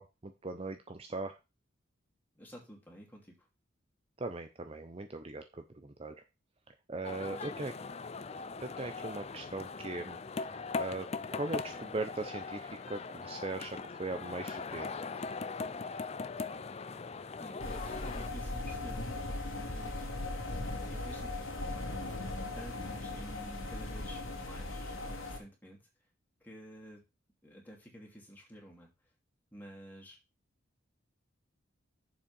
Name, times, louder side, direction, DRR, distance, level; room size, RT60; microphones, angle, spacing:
voice 1, 0.0-1.4 4.2-6.1 6.9-7.7 8.6-14.9, right 2 dB, 30° right, 7 dB, 0.6 m, -40 dB
voice 2, 2.3-3.4 7.3-7.6 17.4-20.1 20.9-21.3 22.5-25.8 26.4-27.0 27.4-28.9 29.5-30.2, equal, 10° left, -1 dB, 2.7 m, -51 dB
sound 1, 7.0-18.3, left 4 dB, 30° left, 0.4 m, -40 dB
sound 2, 17.6-25.4, left 2 dB, 80° left, 2.4 m, -38 dB
7.1 x 5.3 x 5.4 m, 0.26 s
head